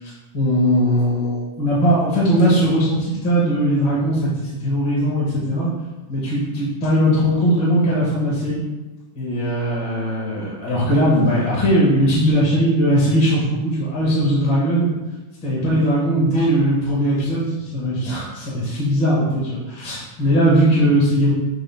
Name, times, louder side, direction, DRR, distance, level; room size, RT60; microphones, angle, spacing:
voice 1, 0.0-4.3 4.6-5.7 6.1-8.6 9.1-15.0 15.4-21.3, equal, 45° left, -7 dB, 2.0 m, -19 dB
8.7 x 3.4 x 3.6 m, 1.1 s
omnidirectional pair, 3.5 m